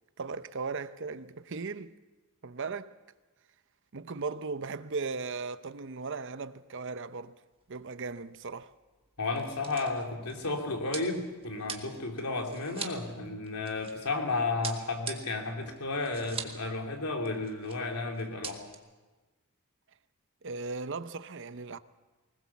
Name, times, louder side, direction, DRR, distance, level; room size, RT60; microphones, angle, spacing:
voice 1, 0.2-1.9 2.4-2.9 3.9-7.4 7.7-8.7 20.4-21.8, right 4 dB, 55° right, 0.8 m, -37 dB
sound 1, 7.6-7.9 8.1-8.2 9.0-14.2 14.6-16.7 16.9-17.0 17.3-17.8 18.1-18.7, right 6 dB, 25° right, 1.7 m, -42 dB
voice 2, 9.2-18.7, left 3 dB, 85° left, 3.1 m, -33 dB
20.5 x 20.0 x 7.2 m
head